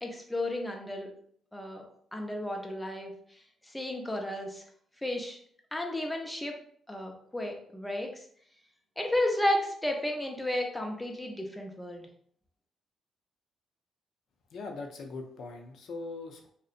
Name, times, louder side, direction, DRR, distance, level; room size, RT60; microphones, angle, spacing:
voice 1, 0.0-1.1 1.5-1.8 2.1-4.6 5.0-5.4 5.7-6.6 6.9-8.3 9.0-12.1, left 1 dB, 10° left, 2 dB, 0.5 m, -33 dB
voice 2, 14.5-16.5, left 3 dB, 70° left, 2 dB, 0.5 m, -41 dB
2.7 x 2.1 x 2.4 m, 0.62 s
cardioid pair, 85°, 0 cm